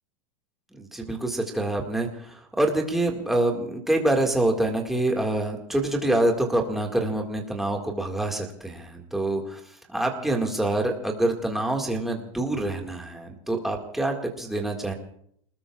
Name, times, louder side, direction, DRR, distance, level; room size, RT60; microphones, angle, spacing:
voice 1, 0.7-14.9, right 1 dB, ahead, 1 dB, 1.9 m, -26 dB
29.5 x 20.0 x 2.4 m, 0.68 s
supercardioid pair, 155°, 18 cm